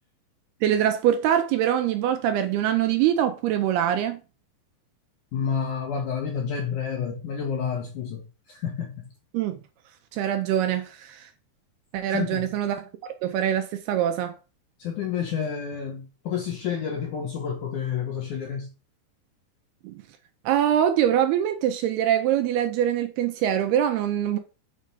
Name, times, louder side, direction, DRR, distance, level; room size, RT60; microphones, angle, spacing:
voice 1, 0.6-4.2 9.3-9.6 10.1-11.3 11.9-14.3 19.8-19.9 20.5-24.4, right 10 dB, 75° right, 2.5 m, -24 dB
voice 2, 5.3-9.1 12.1-12.5 14.8-18.7, left 7 dB, 65° left, 2.0 m, -30 dB
7.5 x 4.8 x 5.6 m
omnidirectional pair, 5.1 m